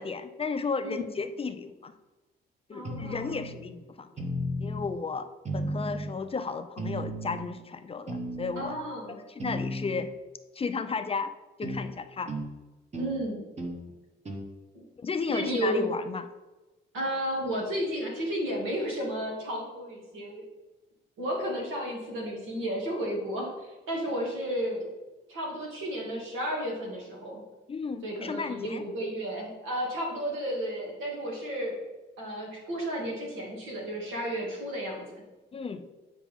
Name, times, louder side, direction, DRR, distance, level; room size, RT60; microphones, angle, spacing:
voice 1, 0.0-1.9 2.7-4.1 4.6-5.3 5.5-8.8 9.3-10.1 10.6-11.3 11.6-12.3 15.0-16.2 27.7-28.8 35.5-35.9, left 4 dB, 30° left, 9 dB, 0.5 m, -33 dB
voice 2, 0.8-1.2 2.7-3.4 8.6-9.2 12.9-13.4 14.7-14.8 15.3-15.9 16.9-20.4 21.2-24.9 25.3-27.4 28.0-31.8 32.2-35.2, equal, 85° right, -2 dB, 2.4 m, -33 dB
sound 1, 2.8-3.6 4.2-4.9 5.5-6.2 6.8-7.5 8.1-8.8 9.4-10.1 11.6-11.8 12.3-12.5 12.9-13.2 13.6-13.8 14.3-14.5, equal, 35° right, 1.4 m, -34 dB
8.3 x 5.0 x 3.6 m, 1.1 s
cardioid pair, 90°, 20 cm